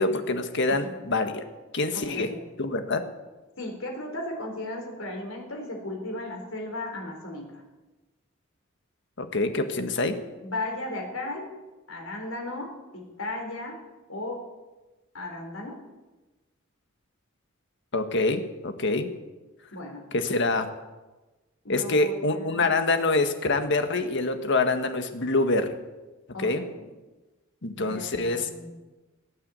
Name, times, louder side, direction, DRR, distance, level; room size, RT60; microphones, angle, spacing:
voice 1, 0.0-1.4 1.7-2.3 2.6-3.0 9.2-10.2 17.9-19.1 20.1-20.7 21.7-25.7 26.4-26.6 27.6-28.5, left 2 dB, 60° left, 7 dB, 1.6 m, -25 dB
voice 2, 1.9-2.4 3.6-7.6 10.4-11.5 11.9-13.8 14.1-14.5 15.1-15.8 19.7-20.1 21.6-22.8 26.3-26.9 27.8-28.7, left 1 dB, 90° left, 1 dB, 4.1 m, -36 dB
18.0 x 9.4 x 8.2 m, 1.2 s
head